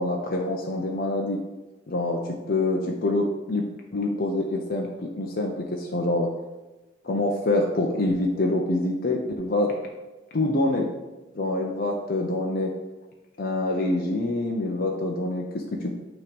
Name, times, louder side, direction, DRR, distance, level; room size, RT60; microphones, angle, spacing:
voice 1, 0.0-1.4 1.9-2.2 2.5-3.7 3.9-6.3 7.0-9.7 10.3-10.9 11.3-12.7 13.4-15.9, left 2 dB, 50° left, 0 dB, 0.7 m, -26 dB
8.9 x 3.1 x 5.1 m, 1.1 s
head